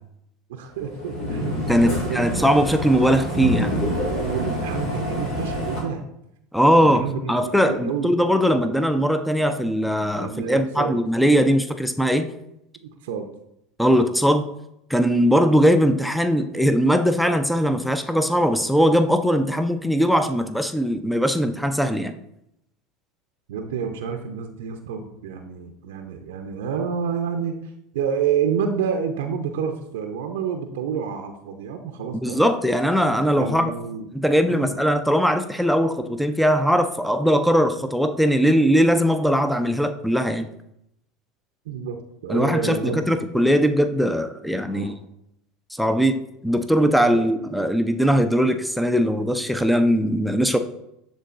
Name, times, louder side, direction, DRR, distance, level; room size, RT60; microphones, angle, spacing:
voice 1, 0.5-2.5 4.1-6.0 6.8-8.1 10.2-11.0 12.8-13.3 23.5-27.6 27.9-32.4 33.4-34.1 34.4-34.8 41.7-43.2 44.6-45.0 47.1-47.3, right 7 dB, 75° right, 5 dB, 0.6 m, -29 dB
sound 1, 0.8-5.8, equal, 70° left, 2.2 m, -27 dB
voice 2, 1.7-3.8 6.5-7.0 7.3-12.3 13.8-14.5 14.9-22.2 32.2-33.7 34.1-40.5 42.3-44.9 45.7-50.6, equal, ahead, 9 dB, 0.5 m, -20 dB
10.0 x 3.9 x 2.5 m, 0.80 s
hypercardioid pair, 85°, 0 cm